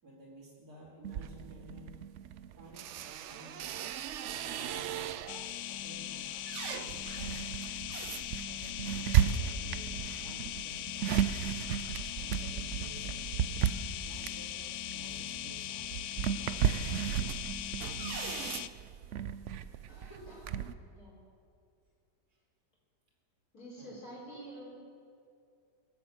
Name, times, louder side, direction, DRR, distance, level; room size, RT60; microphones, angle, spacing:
voice 1, 0.0-2.0 2.6-4.0 4.3-7.5 8.4-11.2 12.1-13.2 14.0-16.1 16.3-17.2 22.3-22.4 23.8-24.0, right 1 dB, 55° right, -8 dB, 3.4 m, -54 dB
sound 1, 1.0-5.5 6.0-20.7, right 9 dB, 75° right, 0.6 m, -35 dB
sound 2, 5.3-18.7, left 12 dB, 75° left, 1.1 m, -40 dB
voice 2, 19.9-20.6 20.9-21.1 23.5-24.7, right 1 dB, 55° left, -5 dB, 5.4 m, -48 dB
22.5 x 8.4 x 7.3 m, 2.4 s
omnidirectional pair, 1.9 m